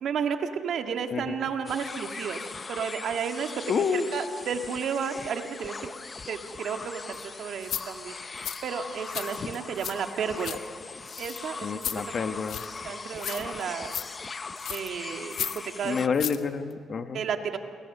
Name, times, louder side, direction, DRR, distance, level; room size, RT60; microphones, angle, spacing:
voice 1, 0.0-3.5 3.9-5.9 6.3-10.6 11.2-12.4 12.8-13.9 14.7-15.5 15.8-16.0 17.1-17.6, right 7 dB, 65° right, 5 dB, 1.8 m, -32 dB
sound 1, 1.7-16.1, left 4 dB, 30° left, 0.7 m, -40 dB
voice 2, 3.7-4.2 11.6-12.6 15.8-17.2, left 5 dB, 50° left, 8 dB, 1.5 m, -28 dB
sound 2, 7.1-7.2 7.6-7.8 8.4-8.6 9.1-9.9 10.2-10.6 11.1-11.4 11.8-12.0 12.5-12.8 13.2-13.6 13.9-14.1 14.6-14.9 15.3-15.6 16.0-16.4 16.7-16.8, left 9 dB, 70° left, 1.1 m, -34 dB
29.0 x 22.5 x 6.8 m, 2.2 s
cardioid pair, 90°, 0 cm